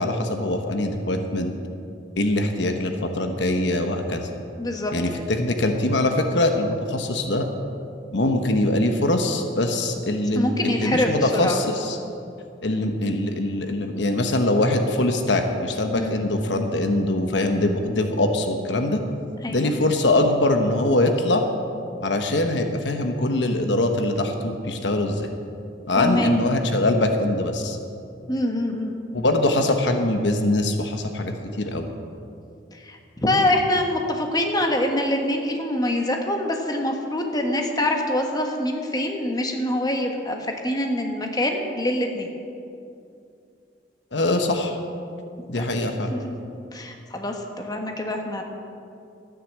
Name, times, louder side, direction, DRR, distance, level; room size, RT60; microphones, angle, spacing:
voice 1, 0.0-1.6 2.2-4.3 4.9-7.5 8.1-12.0 12.6-19.0 19.5-21.4 22.0-25.3 25.9-27.8 29.1-31.9 44.1-44.8 45.5-46.1, left 1 dB, 70° left, 5 dB, 1.1 m, -23 dB
voice 2, 4.6-4.9 10.3-11.6 15.9-16.1 19.4-19.7 26.0-26.3 28.3-29.0 32.8-42.3 45.5-45.6 46.1-46.2 46.7-48.4, left 1 dB, 20° left, 3 dB, 1.4 m, -25 dB
13.0 x 9.9 x 7.5 m, 2.5 s
head